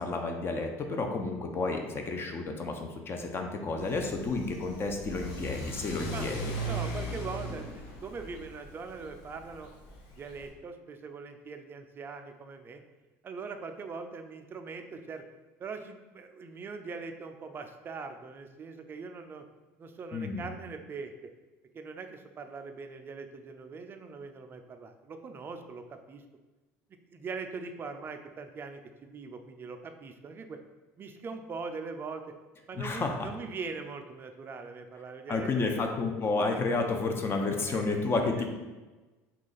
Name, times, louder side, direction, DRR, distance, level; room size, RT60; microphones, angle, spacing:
voice 1, 0.0-6.4 20.1-20.5 32.7-33.3 35.3-38.5, left 3 dB, 30° left, 3 dB, 0.5 m, -31 dB
Car / Accelerating revving vroom, 3.8-10.5, right 1 dB, 70° left, 0.7 m, -39 dB
voice 2, 6.7-9.7 10.1-12.8 13.2-15.2 15.6-19.5 19.8-21.1 21.7-26.2 27.1-30.6 31.0-32.3 32.7-35.5 37.6-38.5, right 4 dB, 30° right, 6 dB, 0.4 m, -41 dB
2.8 x 2.4 x 3.9 m, 1.2 s
supercardioid pair, 95°, 7 cm